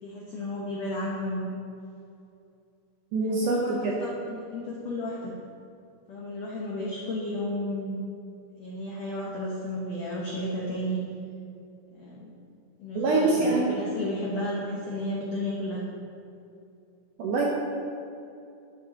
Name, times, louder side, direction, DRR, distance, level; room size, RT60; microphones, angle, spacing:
voice 1, 0.0-1.5 3.2-5.3 6.1-8.0 8.6-11.0 11.9-12.3 12.8-15.8, left 1 dB, 85° left, -4 dB, 1.5 m, -33 dB
voice 2, 3.1-3.9 13.0-13.7 17.2-17.5, right 3 dB, 75° right, -3 dB, 1.9 m, -24 dB
12.5 x 7.5 x 2.8 m, 2.6 s
omnidirectional pair, 4.6 m